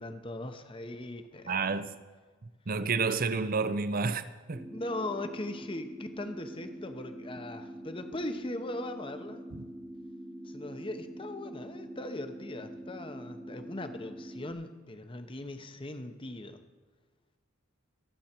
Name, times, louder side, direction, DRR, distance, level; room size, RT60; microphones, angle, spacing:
voice 1, 0.0-1.6 4.7-9.4 10.4-16.6, left 1 dB, 25° left, 0.8 m, -39 dB
voice 2, 1.5-2.0 2.7-4.7 9.5-9.6, right 4 dB, 40° right, 0.6 m, -30 dB
sound 1, 4.5-14.5, right 1 dB, 5° right, 1.2 m, -45 dB
23.0 x 8.0 x 4.4 m
head